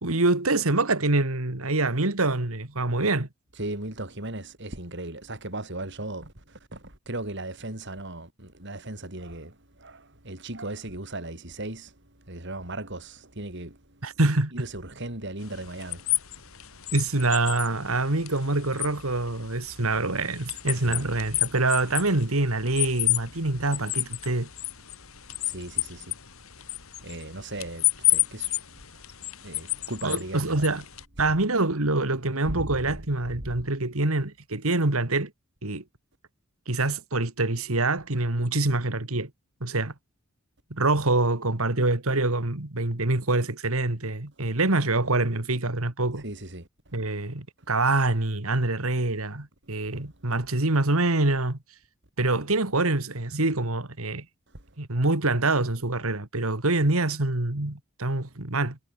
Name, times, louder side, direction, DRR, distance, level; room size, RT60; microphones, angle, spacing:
voice 1, 0.0-3.3 14.0-14.5 16.9-24.5 30.0-30.8 31.2-35.3 35.6-35.8 36.7-39.3 39.6-39.9 40.7-46.2 46.9-51.6 52.2-54.3 54.8-58.8, right 2 dB, 75° right, 2.3 m, -25 dB
voice 2, 3.6-11.9 12.3-14.0 14.6-16.1 20.8-21.1 25.4-26.1 27.0-28.6 29.4-30.7 32.4-32.9 33.4-33.5 46.2-46.7 49.3-49.4 49.9-50.1, right 1 dB, 55° right, 5.1 m, -37 dB
sound 1, 15.4-31.0, left 17 dB, 75° left, 3.3 m, -31 dB
head